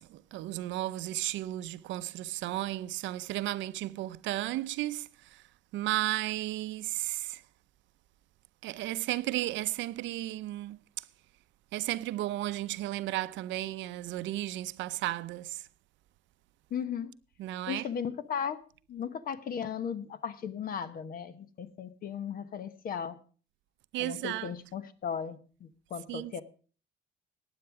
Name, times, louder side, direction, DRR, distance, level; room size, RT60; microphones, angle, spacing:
voice 1, 0.1-5.4 5.7-7.4 8.6-10.8 11.7-15.6 17.4-17.9 23.9-24.5 26.1-26.4, right 16 dB, 80° right, 0.6 m, -34 dB
voice 2, 16.7-17.1 17.7-18.6 18.9-23.2 24.0-26.4, left 7 dB, 50° left, 1.1 m, -36 dB
15.5 x 9.8 x 4.7 m
cardioid pair, 150°, 19 cm